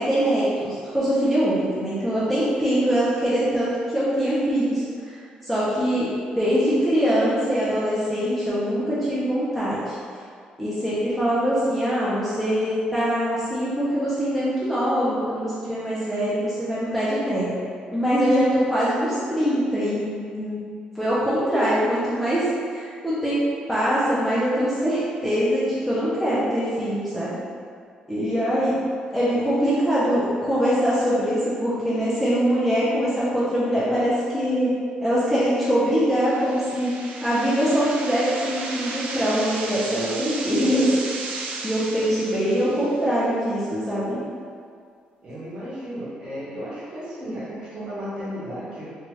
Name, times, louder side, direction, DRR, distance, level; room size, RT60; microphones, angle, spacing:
voice 1, 0.0-5.2 5.4-6.1 6.4-9.9 10.6-17.5 17.9-20.6 20.9-23.4 23.7-27.4 28.1-28.8 29.1-34.7 35.0-36.9 37.2-40.9 41.6-44.2, equal, ahead, -11 dB, 0.4 m, -23 dB
sound 1, 36.1-43.1, right 3 dB, 65° right, 0.3 m, -34 dB
voice 2, 45.2-48.9, equal, 40° right, -9 dB, 1.0 m, -34 dB
2.7 x 2.3 x 3.0 m, 2.2 s
cardioid pair, 180°, 3 cm